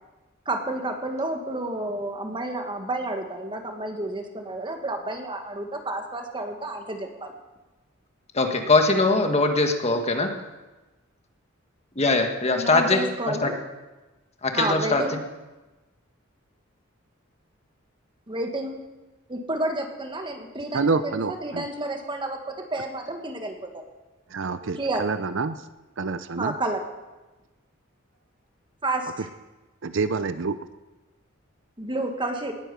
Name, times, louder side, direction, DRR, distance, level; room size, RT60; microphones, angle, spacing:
voice 1, 0.5-7.3 12.6-13.6 14.5-15.1 18.3-18.8 19.3-23.8 24.8-25.1 26.4-26.8 28.8-29.3 31.8-32.5, right 2 dB, 25° right, 4 dB, 1.7 m, -30 dB
voice 2, 8.3-10.3 11.9-13.0 13.3-13.5 14.4-15.0, left 3 dB, 30° left, 5 dB, 1.5 m, -21 dB
voice 3, 20.7-21.6 24.3-25.6 26.0-26.6 29.8-30.6, right 4 dB, 65° right, 12 dB, 0.6 m, -27 dB
19.0 x 9.0 x 6.9 m, 1.1 s
head